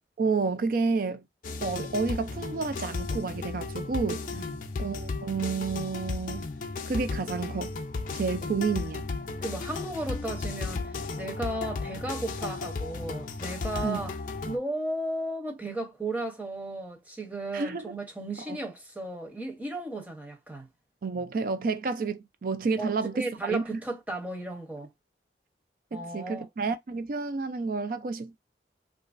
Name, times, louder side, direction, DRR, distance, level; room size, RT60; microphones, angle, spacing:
voice 1, 0.2-1.2 1.6-4.3 4.8-6.5 6.9-7.8 8.1-9.1 13.8-14.0 17.5-17.9 18.5-18.6 21.0-23.8 25.9-28.4, right 4 dB, 50° right, 0.4 m, -30 dB
sound 1, 1.4-14.6, left 3 dB, 45° left, 0.4 m, -35 dB
voice 2, 9.4-14.1 14.5-20.7 22.8-24.9 25.9-26.5, right 2 dB, 10° right, 0.7 m, -35 dB
2.9 x 2.5 x 2.4 m
head